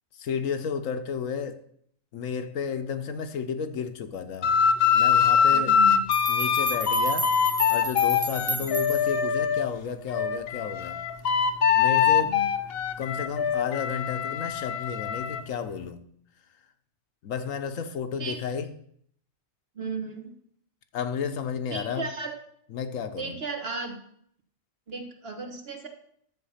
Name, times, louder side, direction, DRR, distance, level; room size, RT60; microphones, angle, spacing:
voice 1, 0.2-1.6 2.1-4.5 4.9-5.7 6.3-7.3 7.7-11.0 11.7-12.4 13.0-16.0 17.2-18.7 20.9-22.1 22.7-23.4, left 6 dB, 80° left, 1.2 m, -32 dB
sound 1, 4.4-9.7 10.1-15.4, left 7 dB, 55° left, 0.8 m, -23 dB
voice 2, 5.5-6.1 8.6-8.7 12.2-12.5 18.2-18.4 19.7-20.3 21.7-22.4 23.2-24.0 24.9-25.9, right 4 dB, 50° right, 1.7 m, -35 dB
sound 2, 5.7-5.8 6.1-9.3, right 2 dB, 25° right, 0.3 m, -34 dB
11.0 x 7.5 x 5.7 m
omnidirectional pair, 1.3 m